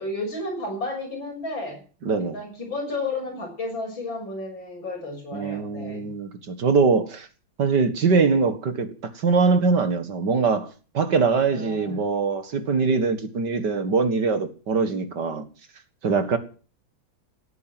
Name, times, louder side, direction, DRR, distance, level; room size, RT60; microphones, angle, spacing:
voice 1, 0.0-1.8 2.3-6.1 11.5-12.0, left 2 dB, 70° left, 7.3 m, -32 dB
voice 2, 2.0-2.4 5.3-7.3 7.6-15.4 16.0-16.4, right 4 dB, 60° right, 2.3 m, -22 dB
17.0 x 9.3 x 7.6 m
omnidirectional pair, 2.1 m